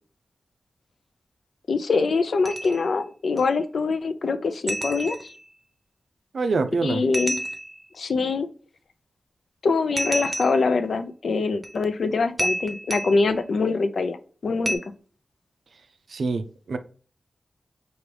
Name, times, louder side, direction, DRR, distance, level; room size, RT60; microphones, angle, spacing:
voice 1, 1.7-5.2 6.8-7.4 8.0-8.5 9.6-14.8, left 4 dB, 75° left, 0.4 m, -24 dB
sound 1, 2.5-2.9 3.4-3.5 4.7-5.5 7.1-7.9 10.0-10.8 11.6-11.8 12.4-13.3 14.7-14.8, right 1 dB, 35° right, 0.6 m, -30 dB
voice 2, 6.3-7.0 16.1-16.8, right 4 dB, 75° right, 0.4 m, -25 dB
4.7 x 2.5 x 3.2 m
cardioid pair, 55°, 0 cm